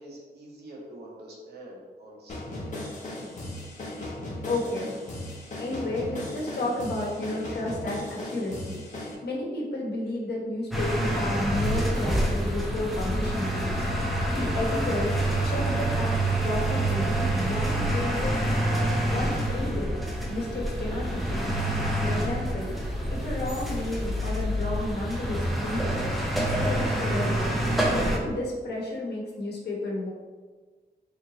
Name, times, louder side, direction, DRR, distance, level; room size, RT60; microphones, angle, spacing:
voice 1, 0.0-2.8, right 1 dB, 75° right, -3 dB, 1.1 m, -46 dB
sound 1, 2.3-9.1, left 1 dB, 45° left, 0.8 m, -37 dB
voice 2, 4.5-4.9 5.6-8.8 9.2-13.9 14.3-15.1 15.4-18.4 19.1-20.0 20.3-21.6 22.0-22.7 23.1-26.0 26.3-27.5 27.9-30.1, left 2 dB, 80° left, -3 dB, 1.0 m, -32 dB
sound 2, 10.7-28.2, right 1 dB, ahead, 0.5 m, -27 dB
sound 3, 13.4-18.6, right 1 dB, 20° left, 1.0 m, -45 dB
3.8 x 3.3 x 2.9 m, 1.4 s
wide cardioid pair, 175°, 17 cm